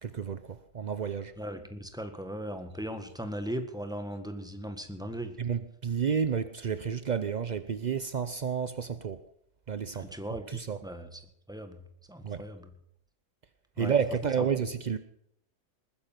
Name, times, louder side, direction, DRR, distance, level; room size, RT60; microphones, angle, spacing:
voice 1, 0.0-1.3 5.4-9.2 9.7-10.1 10.5-10.8 12.2-12.4 13.8-15.0, right 7 dB, 70° right, 12 dB, 0.4 m, -30 dB
voice 2, 1.4-5.4 9.9-11.2 11.5-11.8 12.1-12.7 13.8-13.9, equal, ahead, 7 dB, 1.5 m, -38 dB
20.5 x 10.0 x 5.9 m, 0.72 s
omnidirectional pair, 1.7 m